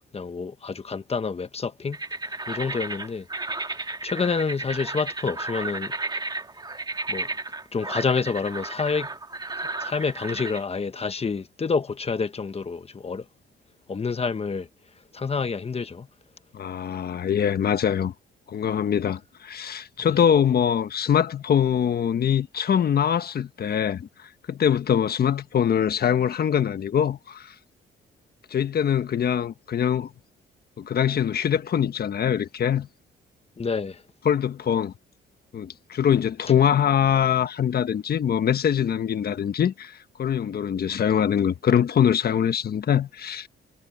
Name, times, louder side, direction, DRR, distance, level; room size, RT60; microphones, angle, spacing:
voice 1, 0.1-2.0 2.5-3.3 4.0-5.9 7.1-7.3 7.7-9.1 9.8-13.2 13.9-14.7 15.1-16.1 33.6-34.0, left 5 dB, 30° left, 1.4 m, -28 dB
sound 1, 1.9-10.6, right 3 dB, 20° right, 2.2 m, -33 dB
voice 2, 16.5-18.1 18.5-27.5 28.5-30.1 30.8-32.9 34.2-34.9 35.5-43.5, left 8 dB, 50° left, 1.4 m, -23 dB
cardioid pair, 90°, 20 cm